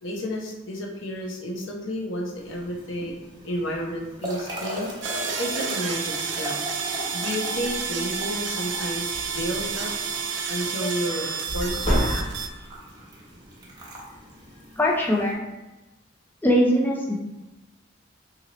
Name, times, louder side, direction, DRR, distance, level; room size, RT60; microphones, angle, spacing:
voice 1, 0.0-3.1 3.4-4.9 5.4-6.6 7.1-9.9 10.5-11.3 11.5-12.5, equal, 75° left, -1 dB, 0.7 m, -31 dB
sound 1, 2.4-15.3, equal, 20° right, 0.8 m, -39 dB
sound 2, 5.0-12.5, right 6 dB, 60° right, 0.4 m, -30 dB
sound 3, 7.5-7.8 8.3-8.4 8.7-9.8 11.5-12.7, equal, 30° left, 1.0 m, -28 dB
voice 2, 14.8-15.4 16.4-17.2, equal, 10° left, -2 dB, 0.4 m, -21 dB
3.9 x 2.8 x 2.9 m, 1.0 s
head